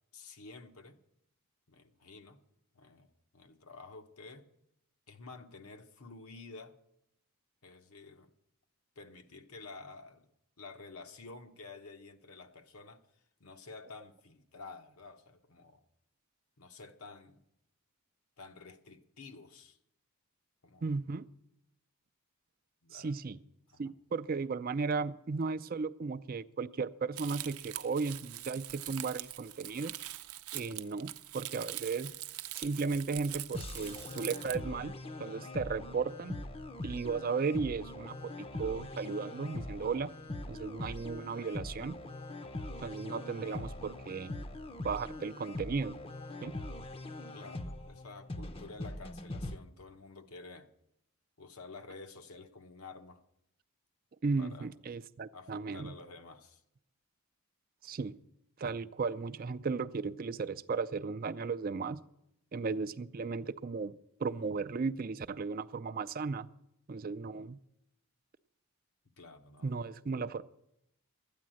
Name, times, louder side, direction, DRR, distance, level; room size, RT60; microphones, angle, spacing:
voice 1, 0.1-1.0 1.7-2.4 2.7-4.4 5.1-6.8 7.6-8.3 9.0-10.3 10.6-13.0 13.4-15.8 16.6-17.4 18.4-19.8 20.6-20.9 22.8-23.1 23.7-23.9 30.6-31.0 43.4-43.9 47.3-50.7 51.4-53.2 54.4-54.7 55.3-56.6 69.2-69.8, left 3 dB, 80° left, 1.1 m, -51 dB
voice 2, 20.8-21.3 22.9-23.4 23.8-29.9 30.5-32.1 32.5-34.9 35.2-36.4 36.8-40.1 40.5-42.0 42.8-44.4 44.8-46.0 46.4-46.6 54.2-55.9 57.8-58.2 58.6-62.0 62.5-63.9 64.2-66.5 66.9-67.6 69.6-70.4, right 4 dB, 40° right, 0.4 m, -35 dB
Crumpling crinkling, 27.2-34.6, right 15 dB, 85° right, 0.6 m, -43 dB
sound 1, 33.5-49.6, left 1 dB, 25° left, 0.6 m, -42 dB
12.5 x 9.6 x 7.6 m
head